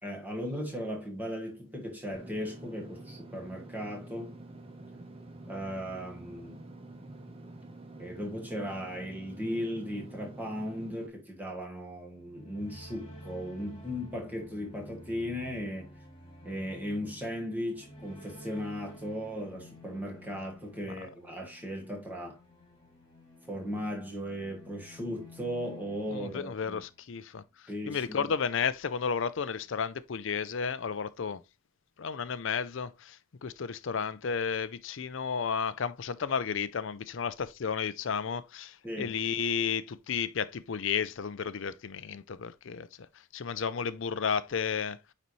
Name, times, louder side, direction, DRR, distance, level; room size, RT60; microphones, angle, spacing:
voice 1, 0.0-4.4 5.5-6.6 8.0-16.0 16.4-22.4 23.5-26.8 27.7-28.3 38.8-39.2, equal, 10° right, 1.5 m, -37 dB
Engine / Mechanisms, 2.1-11.1, right 2 dB, 25° right, 0.9 m, -47 dB
sound 1, 12.1-27.3, left 1 dB, 20° left, 2.2 m, -51 dB
voice 2, 26.1-27.4 27.9-31.4 32.0-42.9 43.3-45.0, left 6 dB, 60° left, 0.5 m, -32 dB
9.3 x 4.1 x 3.1 m
head